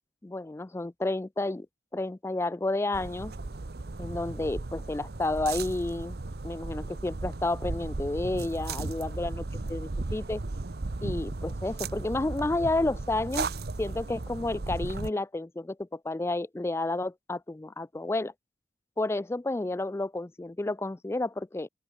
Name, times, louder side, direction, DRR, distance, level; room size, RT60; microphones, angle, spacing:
voice 1, 0.2-1.7 1.9-3.3 4.0-6.2 6.4-10.4 11.0-13.5 13.8-18.3 19.0-21.7, left 2 dB, 15° left, 0.3 m, -31 dB
sound 1, 2.9-15.1, right 3 dB, 60° right, 0.8 m, -35 dB
open air
head